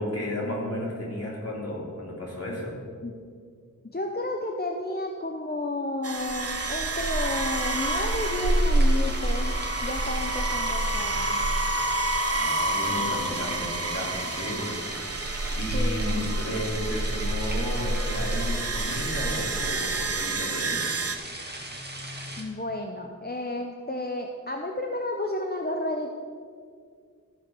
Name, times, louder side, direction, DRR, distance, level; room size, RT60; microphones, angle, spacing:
voice 1, 0.0-2.8 12.2-21.0, left 1 dB, 45° left, -4 dB, 3.1 m, -33 dB
voice 2, 3.8-11.4 15.7-16.3 22.4-26.1, left 1 dB, 30° left, 3 dB, 0.7 m, -32 dB
sound 1, 6.0-21.2, right 2 dB, 45° right, 0.8 m, -27 dB
sound 2, 6.4-22.4, right 1 dB, 30° right, 1.9 m, -39 dB
14.5 x 5.3 x 5.3 m, 2.2 s
wide cardioid pair, 40°, 33 cm